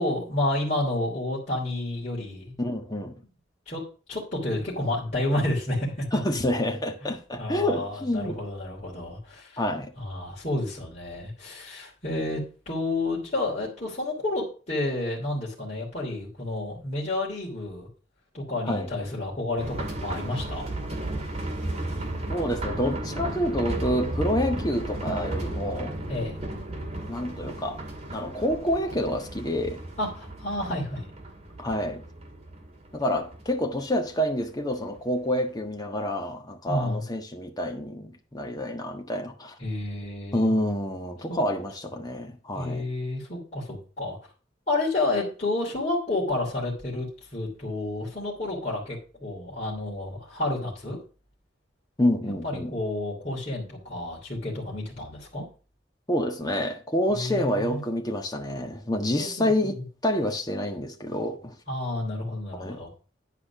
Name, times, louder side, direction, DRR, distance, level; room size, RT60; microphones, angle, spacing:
voice 1, 0.0-2.5 3.7-3.8 4.1-6.1 7.0-9.6 10.0-17.9 18.3-20.7 26.1-26.4 30.0-31.1 36.7-37.0 39.6-40.5 41.3-41.4 42.5-44.2 44.7-51.0 52.2-55.4 57.1-57.8 59.2-59.8 61.7-62.9, left 2 dB, 40° left, 3.0 m, -30 dB
voice 2, 2.6-3.1 6.1-8.4 9.6-9.9 18.6-18.9 22.3-26.0 27.1-27.8 28.1-29.8 31.6-32.0 32.9-39.5 40.3-42.8 52.0-52.7 56.1-61.5 62.5-62.8, left 1 dB, 20° left, 1.4 m, -28 dB
sound 1, 19.6-35.1 35.3-35.4 35.8-35.9, right 1 dB, 35° right, 2.0 m, -34 dB
10.5 x 4.9 x 5.9 m
head